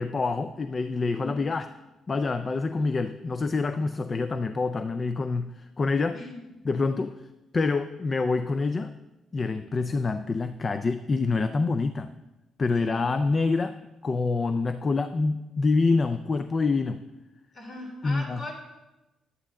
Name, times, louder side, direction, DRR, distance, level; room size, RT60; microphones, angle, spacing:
voice 1, 0.0-1.7 2.1-6.2 6.6-7.2 7.5-8.9 9.3-12.1 12.6-17.0 18.0-18.4, left 3 dB, 35° left, 10 dB, 0.4 m, -26 dB
voice 2, 17.5-18.5, left 1 dB, 55° left, -1 dB, 3.5 m, -39 dB
11.5 x 9.8 x 3.7 m, 1.0 s
cardioid pair, 90°, 0 cm